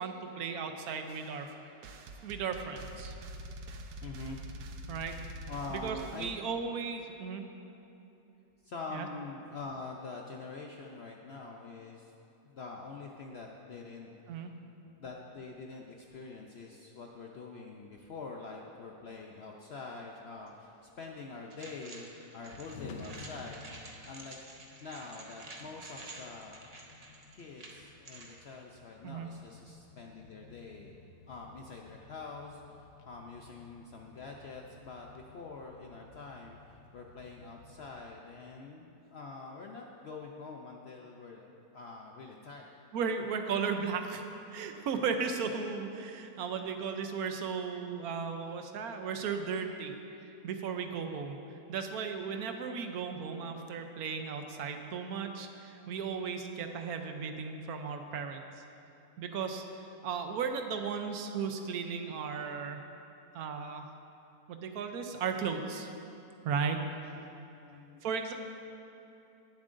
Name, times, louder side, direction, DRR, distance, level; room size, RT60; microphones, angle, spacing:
voice 1, 0.0-1.5 2.2-3.1 4.9-5.2 5.7-7.5 8.9-9.1 14.3-14.5 29.0-29.3 42.9-44.2 44.5-49.9 50.2-51.4 51.7-58.4 59.2-59.6 60.0-62.8 63.3-63.9 64.5-65.9 66.4-66.8 68.0-68.3, right 6 dB, 70° right, 6 dB, 1.1 m, -35 dB
sound 1, 1.1-6.3, right 1 dB, 85° right, 1.3 m, -45 dB
voice 2, 4.0-4.4 5.5-6.6 8.6-12.1 12.4-14.1 15.0-22.1 22.3-24.4 24.8-26.6 27.3-31.0 31.3-42.7 43.0-43.1 67.0-67.3 67.6-68.0, left 3 dB, 80° left, 1 dB, 0.5 m, -45 dB
sound 2, 20.1-38.0, left 3 dB, 65° left, 1.0 m, -55 dB
sound 3, 21.5-28.4, right 2 dB, 35° right, 0.6 m, -50 dB
18.5 x 7.4 x 2.6 m, 2.8 s
omnidirectional pair, 1.8 m